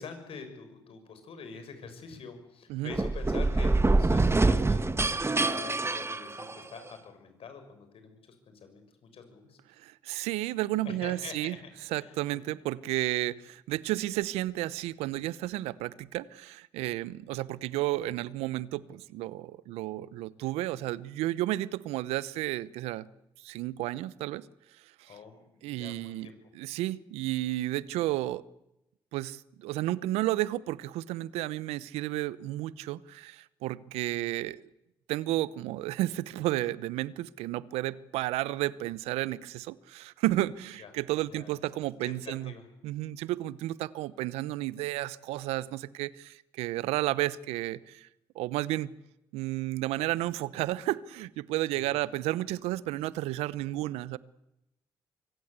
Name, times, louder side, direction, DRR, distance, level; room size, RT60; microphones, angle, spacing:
voice 1, 0.0-4.9 5.3-9.6 10.8-12.4 25.1-26.5 40.8-40.9 41.3-41.5 42.1-42.7 51.7-52.0, left 5 dB, 65° left, 8 dB, 6.6 m, -46 dB
sound 1, 2.9-6.9, right 2 dB, 25° right, 1.7 m, -25 dB
voice 2, 9.8-11.6 11.9-23.1 23.4-24.5 25.0-25.1 25.6-26.3 26.5-28.4 29.1-34.6 35.1-42.5 42.8-48.1 48.3-48.9 49.3-54.2, right 16 dB, 80° right, 19 dB, 0.9 m, -32 dB
24.5 x 24.5 x 8.3 m, 0.89 s
hypercardioid pair, 45°, 10 cm